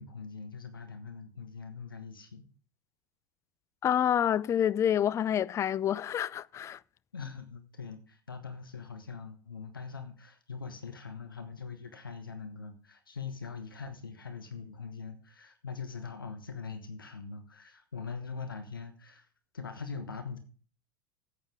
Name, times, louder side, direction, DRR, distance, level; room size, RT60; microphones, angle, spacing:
voice 1, 0.0-2.4 7.1-19.3 19.5-20.4, left 5 dB, 80° left, 1.3 m, -42 dB
voice 2, 3.8-6.8, left 10 dB, 25° left, 0.4 m, -28 dB
14.0 x 9.4 x 3.6 m
figure-of-eight pair, 80°, 11 cm